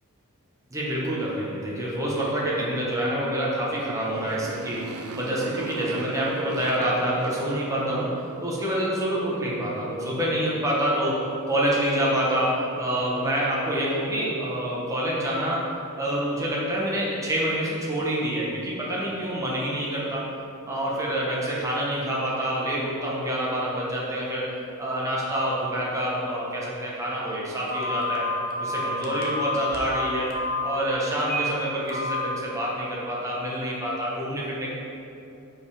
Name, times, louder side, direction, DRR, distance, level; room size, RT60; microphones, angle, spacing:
voice 1, 0.7-8.2 8.4-15.6 16.0-20.3 20.7-24.5 24.8-28.3 28.6-30.3 30.6-34.7, right 1 dB, 15° right, -6 dB, 1.2 m, -27 dB
Motorcycle, 3.7-8.2, right 5 dB, 70° right, 0.4 m, -40 dB
Telephone, 27.7-30.6 31.2-31.5 31.9-32.2, left 2 dB, 45° left, 0.9 m, -29 dB
5.4 x 5.3 x 4.9 m, 2.8 s
head